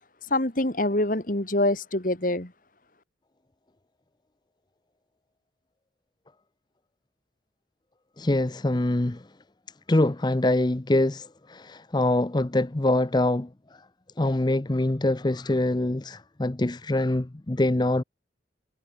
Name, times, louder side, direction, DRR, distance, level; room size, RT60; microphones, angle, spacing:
voice 1, 0.3-2.5, left 1 dB, 45° left, 2.5 m, -25 dB
voice 2, 8.2-9.3 9.9-13.8 14.2-18.0, left 1 dB, 20° left, 0.6 m, -24 dB
head